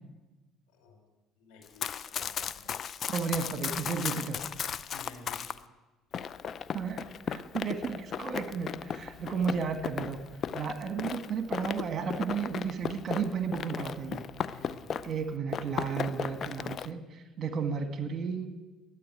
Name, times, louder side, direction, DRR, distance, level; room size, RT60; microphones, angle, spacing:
voice 1, 1.4-2.8 4.9-5.6 14.5-14.9, left 3 dB, 80° left, 2 dB, 5.2 m, -52 dB
Run, 1.6-5.6 6.1-15.2 15.5-16.9, left 7 dB, 50° left, 0.6 m, -36 dB
voice 2, 3.1-4.4 6.7-10.2 10.5-14.2 15.0-18.5, right 6 dB, 45° right, 7 dB, 1.9 m, -33 dB
12.0 x 9.3 x 9.1 m, 1.2 s
supercardioid pair, 85°, 0 cm